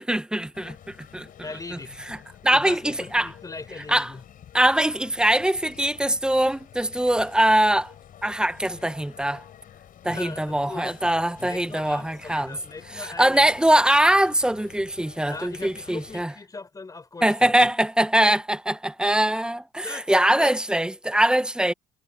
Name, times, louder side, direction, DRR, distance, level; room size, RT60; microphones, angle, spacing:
voice 1, 0.0-1.3 1.7-1.8 2.1-2.2 2.4-3.3 3.9-4.1 4.5-7.9 8.2-9.4 10.0-12.6 12.9-16.3 17.2-21.7, right 1 dB, 5° right, 0.8 m, -22 dB
sound 1, 0.5-16.2, left 10 dB, 55° left, 4.5 m, -49 dB
voice 2, 1.4-2.1 2.5-4.2 10.1-11.1 11.4-13.5 15.2-17.7 19.8-20.1 20.3-20.6, left 3 dB, 20° left, 3.9 m, -39 dB
cardioid pair, 110°, 17 cm